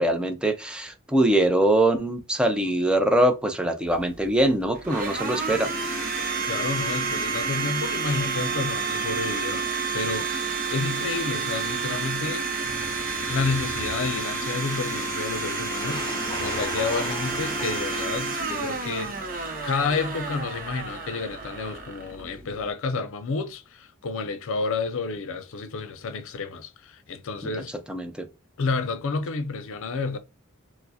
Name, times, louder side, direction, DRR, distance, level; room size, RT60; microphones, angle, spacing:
voice 1, 0.0-5.7 27.9-28.3, right 1 dB, 5° right, 0.5 m, -23 dB
Domestic sounds home sounds, 3.9-22.7, right 4 dB, 40° right, 0.7 m, -30 dB
voice 2, 6.5-9.7 9.9-12.5 13.3-19.2 19.6-27.7 28.6-30.2, left 4 dB, 65° left, 0.5 m, -30 dB
sound 1, 12.6-14.4 15.7-18.2, left 2 dB, 25° left, 0.7 m, -38 dB
4.5 x 2.1 x 2.7 m
head